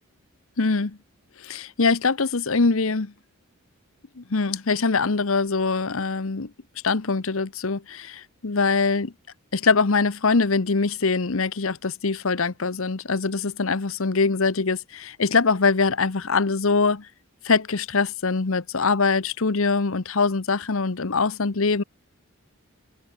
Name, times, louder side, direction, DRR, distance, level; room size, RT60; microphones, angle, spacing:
voice 1, 0.6-1.0 1.4-3.1 4.2-6.5 6.8-9.1 9.5-17.1 17.4-21.8, left 4 dB, 65° left, 1.0 m, -23 dB
head